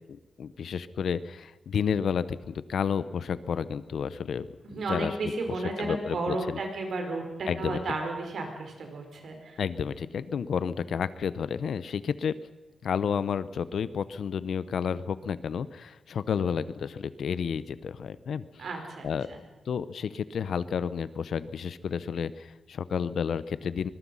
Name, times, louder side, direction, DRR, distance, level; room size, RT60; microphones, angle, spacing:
voice 1, 0.1-4.5 4.9-5.3 5.8-6.6 7.5-7.8 9.6-12.3 12.8-18.6 19.0-19.3 19.7-23.9, left 7 dB, 75° left, 15 dB, 0.9 m, -31 dB
voice 2, 4.6-9.6 18.6-19.4, right 2 dB, 70° right, 3 dB, 5.1 m, -33 dB
24.5 x 21.5 x 5.7 m, 1.1 s
wide cardioid pair, 140°, 0 cm